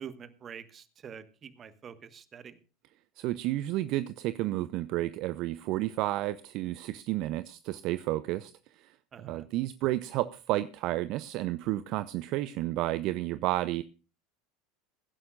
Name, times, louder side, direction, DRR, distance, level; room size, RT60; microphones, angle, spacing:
voice 1, 0.0-2.6 9.1-9.4, right 7 dB, 35° right, 12 dB, 1.4 m, -46 dB
voice 2, 3.2-13.8, right 16 dB, 55° right, 14 dB, 0.5 m, -31 dB
22.0 x 11.0 x 2.4 m, 0.34 s
hypercardioid pair, 80°, 0 cm